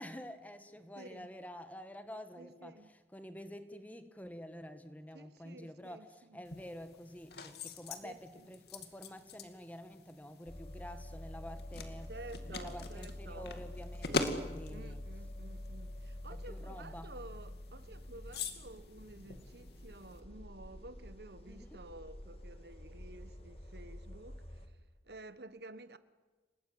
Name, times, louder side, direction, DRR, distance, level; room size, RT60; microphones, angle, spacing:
voice 1, 0.0-2.8 3.1-12.1 12.5-15.0 16.3-17.1 21.4-21.8, equal, 10° left, 1.6 m, -48 dB
voice 2, 1.0-1.3 2.4-2.9 5.1-6.4 8.0-8.5 12.1-13.5 14.1-14.4 14.7-24.7 25.0-26.0, right 2 dB, 65° right, 1.3 m, -52 dB
sound 1, 6.4-20.2, left 3 dB, 65° left, 2.4 m, -44 dB
sound 2, 10.5-24.7, left 1 dB, 35° left, 2.2 m, -48 dB
29.0 x 19.0 x 9.5 m
head